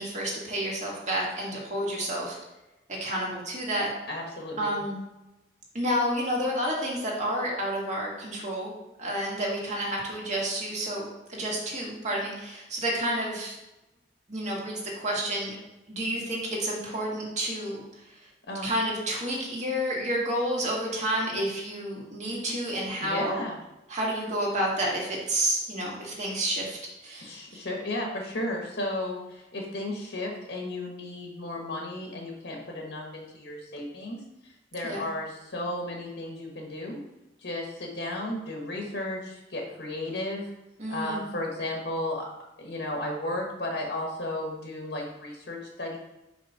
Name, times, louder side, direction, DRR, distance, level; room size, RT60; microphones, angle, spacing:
voice 1, 0.0-2.4 3.0-3.9 4.6-5.0 5.7-8.7 9.0-13.6 14.3-15.6 15.9-17.8 18.6-23.4 23.9-27.6 34.8-35.1 40.8-41.2, right 1 dB, 45° right, -3 dB, 1.8 m, -30 dB
voice 2, 4.1-4.8 18.5-18.7 23.0-23.6 27.2-37.0 37.4-40.5 40.9-42.3 42.6-46.0, left 1 dB, 75° left, 0 dB, 1.3 m, -34 dB
5.3 x 4.3 x 5.7 m, 0.98 s
head